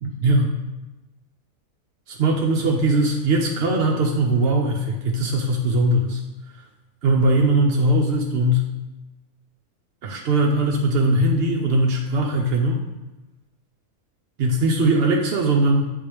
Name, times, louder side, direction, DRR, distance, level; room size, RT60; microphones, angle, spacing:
voice 1, 0.0-0.5 2.1-6.2 7.0-8.7 10.0-12.8 14.4-15.9, right 1 dB, 60° right, -1 dB, 0.7 m, -20 dB
8.5 x 3.7 x 3.3 m, 1.1 s
omnidirectional pair, 1.5 m